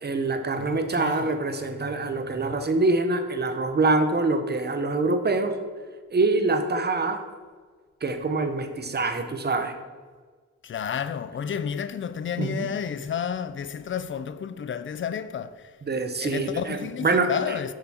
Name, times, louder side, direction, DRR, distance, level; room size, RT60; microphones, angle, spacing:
voice 1, 0.0-5.6 6.1-7.2 8.0-9.7 12.4-12.7 15.8-17.3, right 3 dB, 35° right, 0.7 m, -25 dB
voice 2, 0.6-1.3 10.6-15.8 16.2-17.7, left 7 dB, 40° left, 0.4 m, -31 dB
7.2 x 6.7 x 4.2 m
wide cardioid pair, 145°, 30 cm